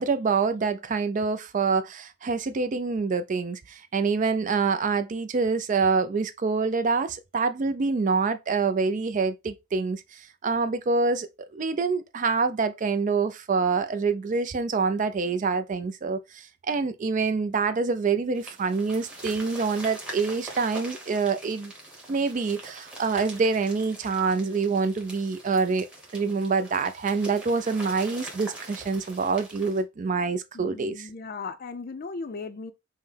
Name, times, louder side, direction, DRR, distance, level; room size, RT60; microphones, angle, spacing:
voice 1, 0.0-21.7 22.1-25.9 26.1-31.1, right 4 dB, 35° right, 0.3 m, -26 dB
sound 1, 18.3-29.8, right 2 dB, 5° right, 1.0 m, -43 dB
voice 2, 30.5-32.7, left 4 dB, 40° left, 0.4 m, -37 dB
5.5 x 2.1 x 3.2 m
head